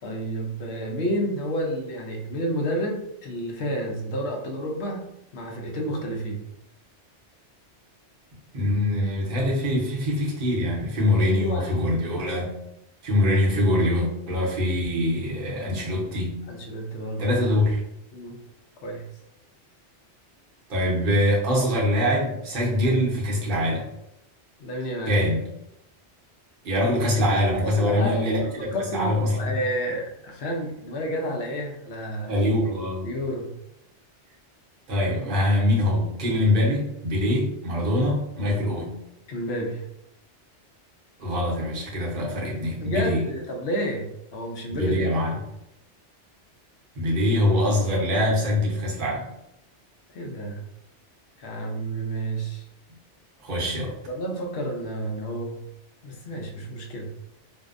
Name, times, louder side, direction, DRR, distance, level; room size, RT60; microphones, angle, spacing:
voice 1, 0.0-5.0 5.3-6.4 11.1-11.8 16.5-17.3 18.1-18.4 18.8-19.0 24.6-25.2 27.8-32.3 33.0-33.5 39.3-39.8 42.8-45.1 50.1-50.6 51.4-52.6 54.1-55.6 56.0-57.1, equal, 65° left, 1 dB, 0.8 m, -30 dB
voice 2, 8.5-12.6 13.0-16.5 17.2-17.8 20.7-23.9 25.1-25.5 26.6-29.3 32.3-33.1 34.9-39.0 41.2-43.3 44.7-45.4 47.0-49.3 53.4-53.9, left 1 dB, 50° right, -4 dB, 0.8 m, -23 dB
2.6 x 2.0 x 2.4 m, 0.82 s
omnidirectional pair, 1.2 m